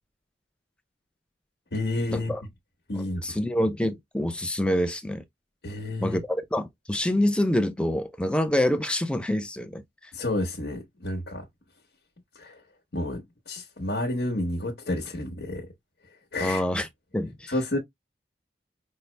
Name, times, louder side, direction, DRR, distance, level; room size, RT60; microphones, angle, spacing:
voice 1, 1.7-2.3 2.9-3.4 5.6-6.2 10.1-11.4 12.3-12.6 12.9-15.7 16.3-16.6 17.5-17.8, left 1 dB, 65° left, 1.0 m, -30 dB
voice 2, 2.9-5.2 6.0-9.8 16.4-16.9 17.1-17.5, left 1 dB, 5° left, 0.4 m, -26 dB
5.4 x 2.0 x 3.2 m
head